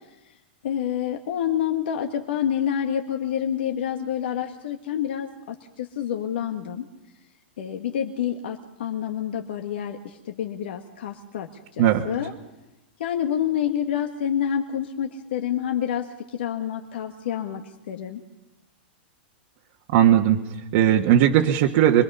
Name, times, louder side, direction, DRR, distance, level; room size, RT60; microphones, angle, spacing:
voice 1, 0.6-6.8 7.6-11.5 11.7-12.3 13.0-18.2, left 9 dB, 75° left, 3 dB, 1.7 m, -28 dB
voice 2, 19.9-22.0, right 10 dB, 55° right, 1 dB, 1.4 m, -18 dB
26.5 x 22.0 x 5.6 m, 0.96 s
supercardioid pair, 140°, 6 cm